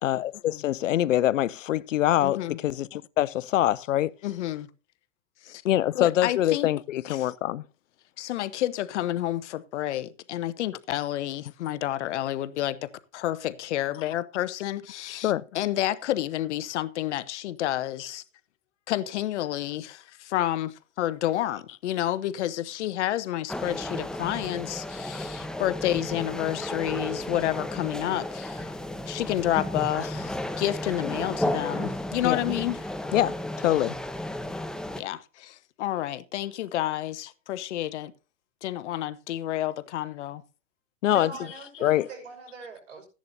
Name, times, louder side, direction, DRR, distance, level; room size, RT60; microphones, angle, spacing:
voice 1, 0.0-4.1 5.6-7.6 15.2-15.4 32.2-32.4 33.1-34.0 41.0-41.3 41.8-42.1, left 13 dB, 85° left, 0.6 m, -24 dB
voice 2, 2.2-2.6 4.2-4.7 5.4-5.6 5.9-6.7 7.1-7.3 8.2-18.2 18.9-28.7 29.1-32.8 35.0-38.1 38.6-40.4, left 13 dB, 70° left, 1.0 m, -30 dB
sound 1, 23.5-35.0, left 1 dB, ahead, 0.7 m, -33 dB
voice 3, 41.1-43.1, right 3 dB, 90° right, 5.5 m, -42 dB
14.5 x 10.5 x 2.8 m
hypercardioid pair, 130°, 37 cm